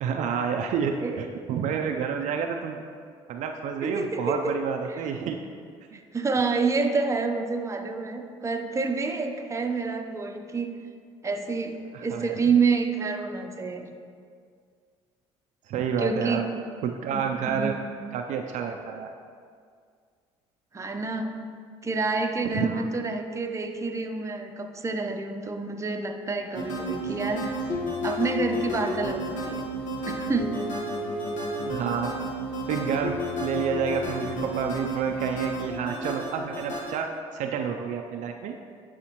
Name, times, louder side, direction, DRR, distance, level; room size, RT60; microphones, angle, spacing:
voice 1, 0.0-2.8 3.3-5.4 5.9-6.0 11.9-12.3 15.7-16.4 16.8-17.8 18.1-19.1 22.5-22.9 31.6-32.1 32.7-38.6, right 7 dB, 65° right, 4 dB, 0.4 m, -29 dB
voice 2, 3.8-4.6 4.9-5.0 5.9-10.7 11.2-13.9 16.0-16.4 17.1-17.2 17.5-17.9 20.7-21.4 21.8-27.6 28.0-29.6 30.1-30.6, right 4 dB, 20° right, 4 dB, 0.7 m, -28 dB
sound 1, 26.5-36.9, equal, 65° left, 1.3 m, -31 dB
9.6 x 4.2 x 3.0 m, 2.1 s
hypercardioid pair, 65°, 14 cm